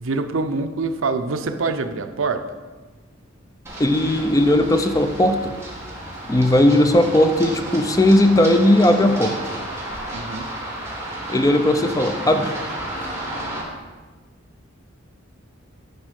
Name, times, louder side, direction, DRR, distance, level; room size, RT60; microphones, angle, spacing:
voice 1, 0.0-2.4 10.1-10.5, right 3 dB, 75° right, 8 dB, 0.6 m, -25 dB
Run, 3.7-13.6, right 1 dB, 15° right, 1.8 m, -32 dB
voice 2, 3.8-5.6 6.3-9.3 11.3-12.5, left 1 dB, 15° left, 7 dB, 0.5 m, -17 dB
9.9 x 4.2 x 6.4 m, 1.3 s
head